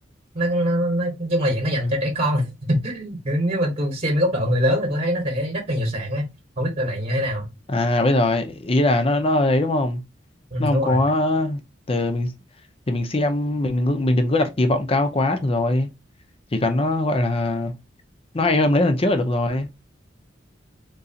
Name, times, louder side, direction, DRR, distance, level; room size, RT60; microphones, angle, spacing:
voice 1, 0.3-6.3 6.6-7.5 10.5-11.0, equal, 35° right, 1.1 m, -23 dB
voice 2, 7.7-10.0 10.6-11.6 11.9-12.3 12.9-15.9 16.5-17.7 18.3-19.7, left 1 dB, 30° left, 0.7 m, -21 dB
3.9 x 3.0 x 2.8 m
head